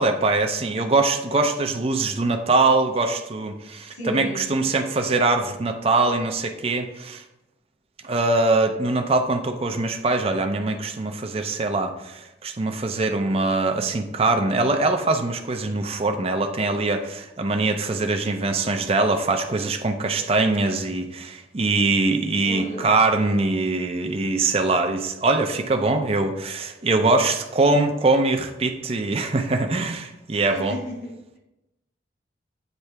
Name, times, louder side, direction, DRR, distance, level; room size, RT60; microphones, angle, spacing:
voice 1, 0.0-7.2 8.0-30.8, right 3 dB, 35° right, 5 dB, 0.5 m, -22 dB
voice 2, 3.8-4.5 22.4-22.9 30.5-31.1, equal, 65° left, -4 dB, 2.6 m, -33 dB
8.2 x 3.3 x 4.6 m, 0.94 s
head